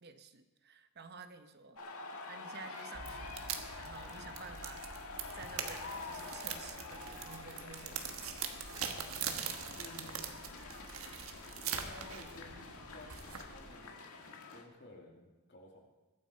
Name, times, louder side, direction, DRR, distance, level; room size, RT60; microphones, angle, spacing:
voice 1, 0.0-1.8 2.3-3.4 3.8-4.9 5.3-8.2, right 5 dB, 50° right, 9 dB, 0.9 m, -52 dB
sound 1, 1.8-14.6, left 3 dB, 85° left, 1.8 m, -47 dB
sound 2, 2.9-13.7, right 7 dB, 75° right, 1.3 m, -43 dB
voice 2, 9.6-10.3 11.7-12.6 12.9-15.8, left 1 dB, 55° left, -1 dB, 2.7 m, -54 dB
22.0 x 9.4 x 4.4 m, 1.1 s
head